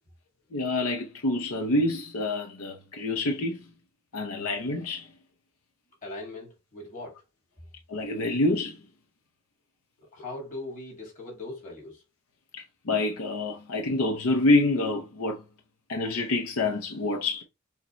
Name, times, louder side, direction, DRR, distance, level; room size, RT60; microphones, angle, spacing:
voice 1, 0.5-3.6 4.1-5.1 7.9-8.8 12.5-15.4 15.9-17.4, left 2 dB, 85° left, 0.7 m, -27 dB
voice 2, 6.0-7.2 10.0-12.0, left 2 dB, 40° left, 2.1 m, -40 dB
6.4 x 2.2 x 3.0 m
head